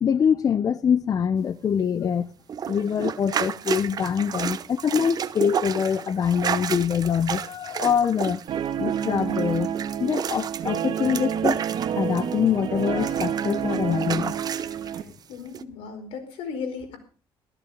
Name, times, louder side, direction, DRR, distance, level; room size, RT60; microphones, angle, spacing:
voice 1, 0.0-2.3 2.7-8.4 8.8-9.7 10.0-11.6 12.0-14.4, left 7 dB, 40° left, 0.7 m, -24 dB
sound 1, 2.5-12.5 12.8-15.0 15.5-15.6, right 8 dB, 45° right, 1.0 m, -31 dB
Guitar, 8.5-15.0, right 9 dB, 60° right, 2.0 m, -29 dB
voice 2, 14.8-17.0, left 5 dB, 90° left, 4.8 m, -36 dB
14.5 x 14.0 x 5.1 m
cardioid pair, 110°, 9 cm